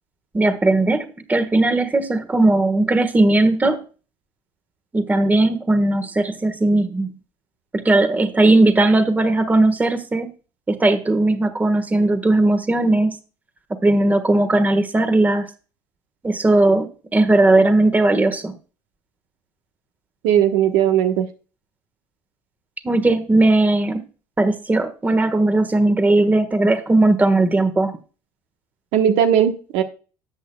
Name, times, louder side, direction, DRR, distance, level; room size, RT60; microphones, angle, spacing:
voice 1, 0.3-3.8 4.9-7.1 7.7-10.3 10.7-13.2 13.7-15.5 16.2-18.5 22.8-24.0 24.4-28.0, right 2 dB, 15° right, 9 dB, 1.4 m, -18 dB
voice 2, 20.2-21.3 28.9-29.8, right 9 dB, 75° right, 6 dB, 1.1 m, -17 dB
13.5 x 8.2 x 2.3 m, 0.36 s
supercardioid pair, 85°, 10 cm